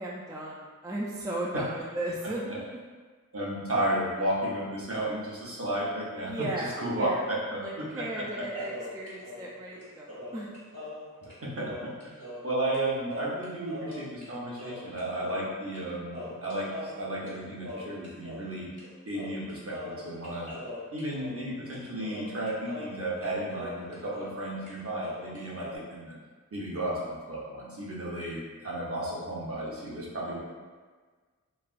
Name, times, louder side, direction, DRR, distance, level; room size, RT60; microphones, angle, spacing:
voice 1, 0.0-2.8 6.3-7.3 7.6-10.5, right 1 dB, 10° right, -4 dB, 0.3 m, -36 dB
voice 2, 3.3-8.4 11.6-18.7 19.1-20.5 20.9-26.1 26.5-30.4, right 1 dB, 45° right, -6 dB, 0.8 m, -33 dB
sound 1, 8.5-12.5 12.7-12.8 13.1-14.3 14.6-15.8 16.1-18.5 18.8-18.9 19.1-24.4 24.7-25.8, left 1 dB, 70° right, 1.2 m, -42 dB
3.2 x 2.3 x 2.5 m, 1.4 s
wide cardioid pair, 75°, 31 cm